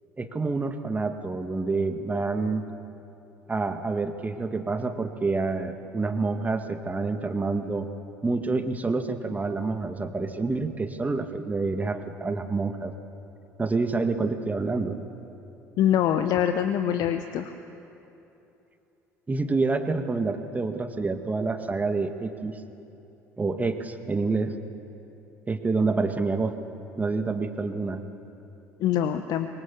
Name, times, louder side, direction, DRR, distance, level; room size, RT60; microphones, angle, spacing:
voice 1, 0.2-2.6 3.5-7.9 8.2-12.9 13.6-15.0 19.3-22.6 23.4-24.5 25.5-26.6 27.0-28.0, right 3 dB, 20° right, 7 dB, 1.9 m, -27 dB
voice 2, 15.8-17.5 28.8-29.5, left 10 dB, 50° left, 9 dB, 1.1 m, -24 dB
25.0 x 23.5 x 7.3 m, 2.9 s
figure-of-eight pair, 55°, 8 cm